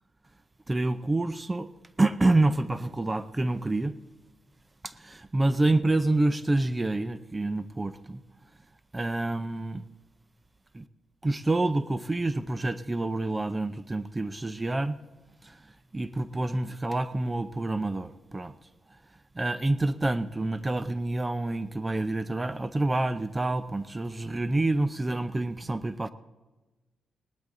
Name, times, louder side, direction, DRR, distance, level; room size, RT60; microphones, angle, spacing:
voice 1, 0.7-1.7 2.0-3.9 4.8-8.2 8.9-9.8 10.7-10.8 11.2-15.0 15.4-15.6 15.9-18.5 19.3-26.1, right 2 dB, 20° right, 0.5 m, -27 dB
18.5 x 12.0 x 3.8 m
cardioid pair, 85°, 0 cm